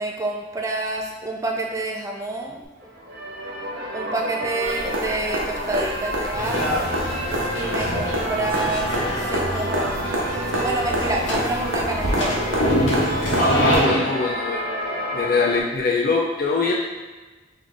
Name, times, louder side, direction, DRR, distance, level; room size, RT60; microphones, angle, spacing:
voice 1, 0.0-3.0 3.9-6.9 7.5-10.0 10.6-12.7 15.0-15.3, right 2 dB, 15° right, 1 dB, 0.4 m, -28 dB
sound 1, 2.8-15.6, equal, 55° right, 0.6 m, -30 dB
sound 2, 4.6-13.8 15.8-15.9, right 1 dB, 90° right, 0.9 m, -28 dB
sound 3, 6.3-14.0, equal, 70° left, 0.9 m, -25 dB
voice 2, 13.6-14.6 15.1-16.7, left 4 dB, 50° left, -2 dB, 0.5 m, -22 dB
3.3 x 3.3 x 3.8 m, 1.3 s
head